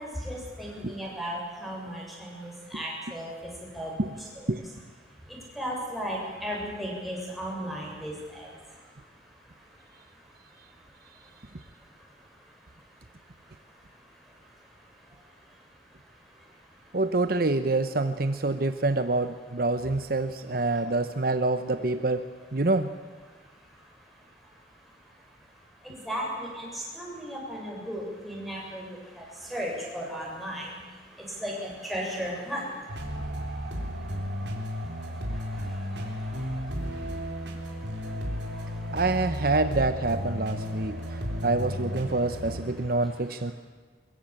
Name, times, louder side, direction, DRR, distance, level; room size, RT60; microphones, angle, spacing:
voice 1, 0.0-3.3 3.7-3.9 4.4-4.5 5.6-8.5 26.0-29.2 29.5-30.8 31.4-32.6, equal, ahead, -3 dB, 7.3 m, -35 dB
voice 2, 16.9-22.9 38.9-43.5, right 2 dB, 55° right, 10 dB, 0.9 m, -26 dB
sound 1, 32.9-42.6, equal, 75° right, 4.3 m, -33 dB
22.5 x 22.5 x 8.9 m, 1.4 s
head